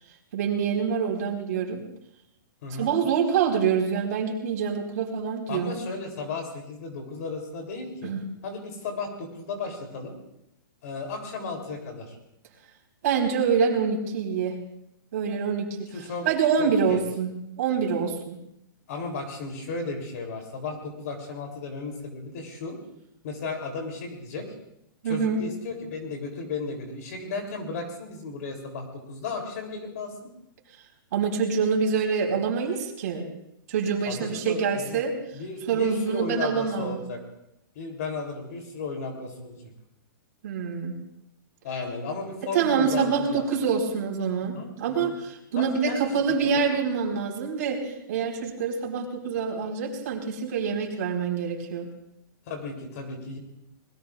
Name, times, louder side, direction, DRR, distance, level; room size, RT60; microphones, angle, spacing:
voice 1, 0.3-1.8 2.7-5.7 8.0-8.2 13.0-14.6 15.1-17.3 17.6-18.4 25.0-25.4 31.1-33.2 33.7-35.1 35.7-37.0 40.4-41.0 42.5-51.9, right 6 dB, 45° right, 0 dB, 4.2 m, -26 dB
voice 2, 5.5-8.1 8.4-10.1 10.8-12.2 15.9-16.3 16.6-17.0 18.9-22.8 23.2-24.5 25.0-30.3 34.0-35.0 35.3-37.2 37.7-39.7 41.6-43.4 44.5-44.7 45.0-45.1 45.6-46.0 46.5-46.6 52.5-53.4, left 3 dB, 45° left, 3 dB, 3.2 m, -34 dB
26.5 x 21.0 x 2.5 m, 0.81 s
hypercardioid pair, 175°, 12 cm